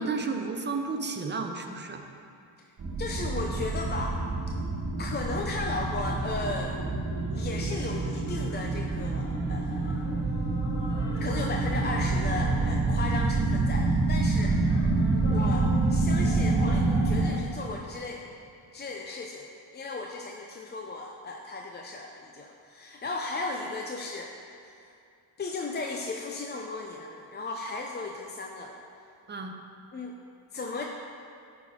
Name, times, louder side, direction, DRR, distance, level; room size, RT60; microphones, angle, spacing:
voice 1, 0.0-2.0 29.3-29.5, right 4 dB, 25° right, 4 dB, 0.6 m, -32 dB
sound 1, 2.8-17.2, right 3 dB, 50° right, 1.5 m, -27 dB
voice 2, 3.0-4.2 5.0-6.8 7.3-10.0 11.2-14.6 15.3-18.3 18.7-19.5 19.7-24.3 24.6-24.9 25.4-28.8 29.9-30.1 30.5-30.8, left 3 dB, 25° left, 1 dB, 0.5 m, -35 dB
sound 2, 7.0-17.7, left 1 dB, 65° left, 1.4 m, -46 dB
9.4 x 4.0 x 3.7 m, 2.5 s
cardioid pair, 70°, 44 cm